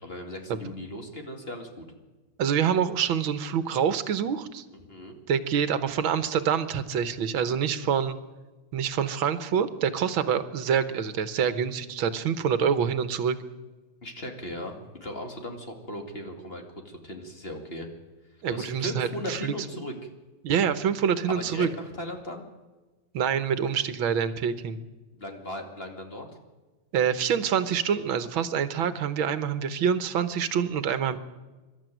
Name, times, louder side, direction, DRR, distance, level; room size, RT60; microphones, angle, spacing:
voice 1, 0.0-1.9 4.7-5.2 14.0-17.9 18.5-20.1 21.3-22.5 25.1-26.3, equal, 30° left, 4 dB, 2.6 m, -37 dB
voice 2, 2.4-4.6 5.3-8.2 8.7-13.4 18.4-19.5 20.4-21.7 23.1-24.8 26.9-31.2, right 7 dB, 80° right, 13 dB, 1.9 m, -26 dB
24.5 x 12.5 x 9.2 m, 1.2 s
omnidirectional pair, 2.2 m